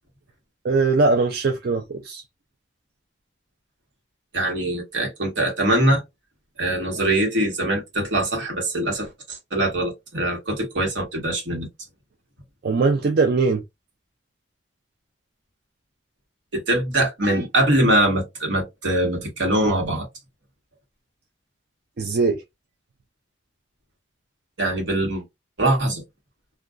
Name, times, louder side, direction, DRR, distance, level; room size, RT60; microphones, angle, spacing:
voice 1, 0.6-2.2 12.6-13.6 22.0-22.4, right 4 dB, 55° right, 0.4 m, -20 dB
voice 2, 4.3-6.0 6.6-11.7 16.5-20.1 24.6-25.2 25.6-26.0, right 1 dB, 85° right, 1.2 m, -22 dB
2.4 x 2.2 x 2.3 m
head